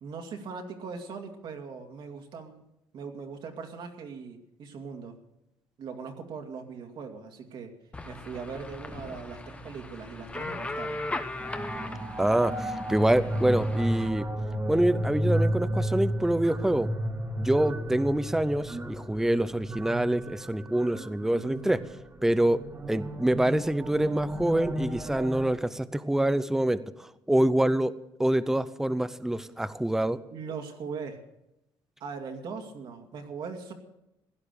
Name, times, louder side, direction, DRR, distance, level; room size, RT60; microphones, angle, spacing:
voice 1, 0.0-2.6 2.9-5.2 5.8-7.7 8.1-11.0 21.3-21.8 28.6-28.7 30.3-31.2 32.0-33.7, right 5 dB, 60° right, 4 dB, 2.3 m, -40 dB
sound 1, 7.9-14.1, left 2 dB, 15° left, 1.0 m, -38 dB
sound 2, 11.4-25.5, right 1 dB, 25° right, 1.8 m, -33 dB
voice 2, 12.2-14.3 14.7-16.9 17.4-21.8 22.2-22.6 22.9-26.8 27.3-27.9 28.2-30.2, right 1 dB, 5° right, 14 dB, 0.6 m, -26 dB
16.5 x 11.0 x 6.8 m, 0.87 s
cardioid pair, 135°, 9 cm